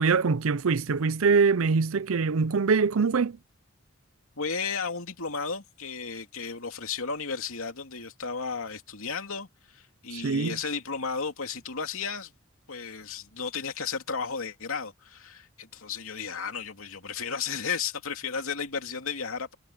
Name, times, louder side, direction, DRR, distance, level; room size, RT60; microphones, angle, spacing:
voice 1, 0.0-3.4 10.1-10.6, right 5 dB, 70° right, 0.6 m, -23 dB
voice 2, 4.4-12.3 12.7-19.5, left 5 dB, 75° left, 2.7 m, -34 dB
head